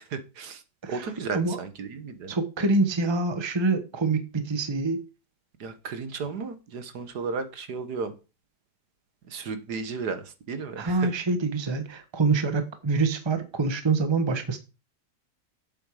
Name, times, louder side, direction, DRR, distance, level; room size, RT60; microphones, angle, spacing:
voice 1, 0.1-0.6 0.9-2.3 5.6-8.1 9.3-11.1, right 5 dB, 70° right, 1.7 m, -34 dB
voice 2, 0.8-1.6 2.3-5.0 10.8-14.6, right 3 dB, 20° right, 1.0 m, -26 dB
8.0 x 7.6 x 4.8 m
omnidirectional pair, 1.8 m